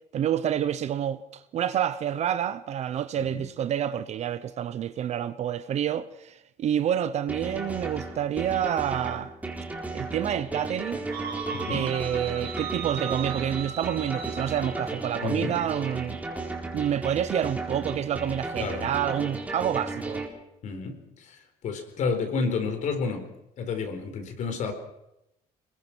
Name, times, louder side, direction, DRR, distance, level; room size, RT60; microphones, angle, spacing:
voice 1, 0.1-9.3 9.9-11.1 11.7-16.2 16.7-20.2, right 10 dB, 45° right, 0.8 m, -28 dB
voice 2, 3.2-3.5 11.5-11.9 15.2-15.6 18.6-18.9 20.6-23.3 23.6-24.7, left 4 dB, 50° left, 4.3 m, -31 dB
sound 1, 7.3-20.3, right 2 dB, 10° right, 4.2 m, -35 dB
sound 2, 11.1-14.8, right 7 dB, 75° right, 5.8 m, -37 dB
26.0 x 22.0 x 6.2 m
cardioid pair, 170°, 16 cm